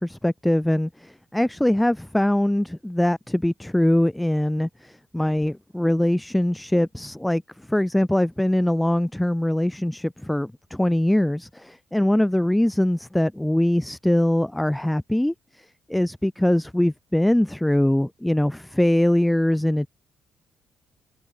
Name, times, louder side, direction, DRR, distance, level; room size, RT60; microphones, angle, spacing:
voice 1, 0.0-19.9, left 1 dB, 5° left, 3.9 m, -22 dB
cardioid pair, 90°, 0 cm